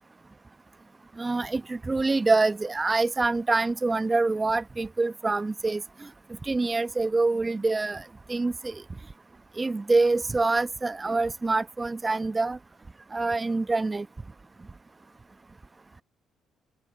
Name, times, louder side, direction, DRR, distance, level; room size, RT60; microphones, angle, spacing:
voice 1, 1.2-6.1 6.4-8.8 9.6-12.6 13.1-14.1, right 3 dB, 25° right, 0.9 m, -26 dB
supercardioid pair, 70°, 0 cm